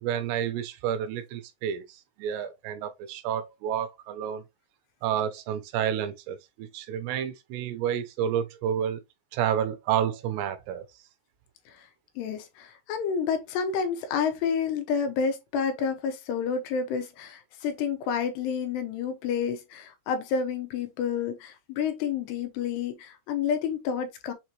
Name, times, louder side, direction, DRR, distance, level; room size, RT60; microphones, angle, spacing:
voice 1, 0.0-1.8 2.2-4.4 5.0-9.0 9.3-10.8, right 9 dB, 80° right, 2.7 m, -30 dB
voice 2, 12.2-24.3, left 6 dB, 85° left, 2.8 m, -29 dB
6.6 x 3.0 x 2.6 m
omnidirectional pair, 5.0 m